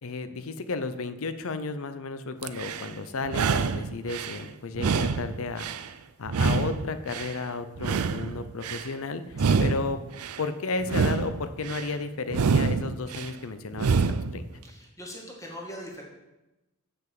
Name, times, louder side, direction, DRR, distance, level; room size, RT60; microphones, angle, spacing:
voice 1, 0.0-5.7 6.2-10.0 10.4-14.4, left 3 dB, 65° left, 11 dB, 0.7 m, -33 dB
sound 1, 2.4-2.9 3.3-4.4 4.8-5.9 6.3-7.4 7.8-8.9 9.3-10.4 10.8-11.9 12.3-13.3 13.7-14.4, right 5 dB, 85° right, 0.5 m, -26 dB
voice 2, 14.6-16.0, equal, 15° left, -1 dB, 1.9 m, -41 dB
7.0 x 6.5 x 7.6 m, 1.0 s
head